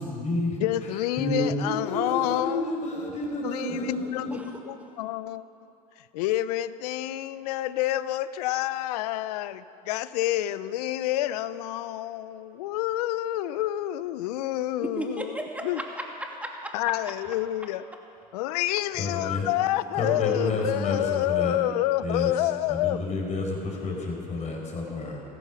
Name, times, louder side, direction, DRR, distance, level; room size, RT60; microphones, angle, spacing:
voice 1, 0.0-4.4 18.9-19.5 19.9-21.6 22.0-25.2, left 2 dB, 35° left, -1 dB, 4.9 m, -30 dB
voice 2, 0.6-2.6 3.4-3.8 4.1-4.2 5.0-5.4 6.1-9.6 9.9-15.3 15.6-15.8 16.7-17.8 18.3-23.0, left 14 dB, 85° left, 16 dB, 0.6 m, -28 dB
voice 3, 14.8-16.9, right 1 dB, 5° right, 1 dB, 2.6 m, -35 dB
15.0 x 14.5 x 6.2 m, 2.8 s
hypercardioid pair, 80°, 19 cm